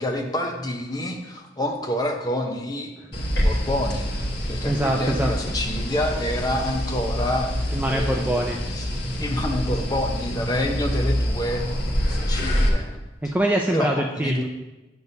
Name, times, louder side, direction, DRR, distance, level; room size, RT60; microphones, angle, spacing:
voice 1, 0.0-2.9 3.4-7.5 7.9-8.9 9.2-11.6 12.1-13.0 13.2-13.3 13.7-14.4, left 1 dB, 20° left, 2 dB, 0.7 m, -28 dB
sound 1, 3.1-12.7, equal, 65° left, 1.5 m, -26 dB
voice 2, 4.6-5.3 7.7-8.6 13.2-14.4, right 1 dB, 10° right, 1 dB, 0.3 m, -23 dB
9.2 x 6.9 x 2.7 m, 1.1 s
head